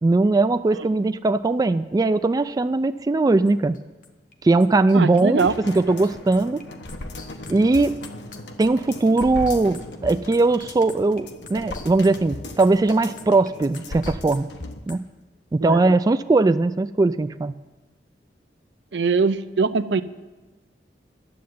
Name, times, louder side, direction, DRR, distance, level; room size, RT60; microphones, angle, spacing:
voice 1, 0.0-3.8 4.4-6.6 7.5-8.0 8.6-14.5 14.9-15.0 15.5-17.5, right 3 dB, 20° right, 11 dB, 0.3 m, -20 dB
sound 1, 3.3-4.3 4.6-15.0, left 3 dB, 50° left, 1.1 m, -40 dB
voice 2, 4.9-5.5 15.6-15.8 18.9-20.0, right 4 dB, 80° right, 12 dB, 0.6 m, -22 dB
sound 2, 5.4-14.8 15.2-15.3, left 1 dB, 75° left, 1.1 m, -38 dB
10.5 x 7.6 x 9.4 m, 1.2 s
head